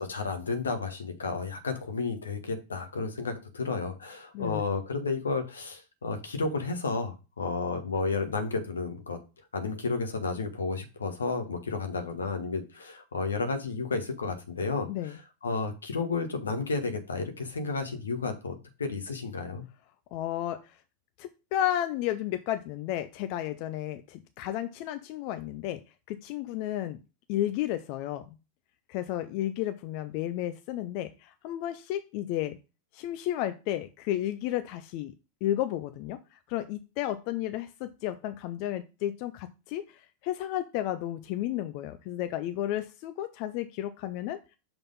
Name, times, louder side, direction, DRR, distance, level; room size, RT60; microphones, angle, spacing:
voice 1, 0.0-9.2 9.5-19.6, left 4 dB, 90° left, 7 dB, 1.2 m, -32 dB
voice 2, 20.1-20.7 21.2-25.8 26.1-27.0 27.3-28.3 28.9-32.6 32.9-35.1 35.4-36.2 36.5-44.4, left 12 dB, 55° left, 11 dB, 0.5 m, -32 dB
5.9 x 3.5 x 5.4 m, 0.30 s
hypercardioid pair, 100°, 0 cm